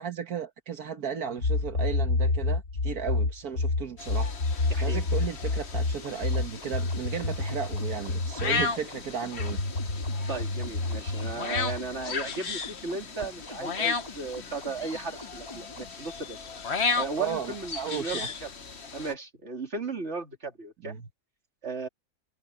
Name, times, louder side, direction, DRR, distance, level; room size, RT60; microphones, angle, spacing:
voice 1, 0.0-4.3 4.8-9.6 17.2-18.3 20.8-21.1, right 7 dB, 80° right, 1.9 m, -35 dB
sound 1, 1.4-8.7 9.4-11.9, left 3 dB, 65° left, 2.3 m, -28 dB
sound 2, 4.0-19.1, left 4 dB, 45° left, 1.5 m, -35 dB
voice 2, 4.7-5.0 10.0-16.5 16.9-18.5 18.9-20.9 21.6-21.9, right 4 dB, 45° right, 3.4 m, -36 dB
sound 3, 5.9-15.9, left 2 dB, 15° left, 3.4 m, -47 dB
omnidirectional pair, 1.6 m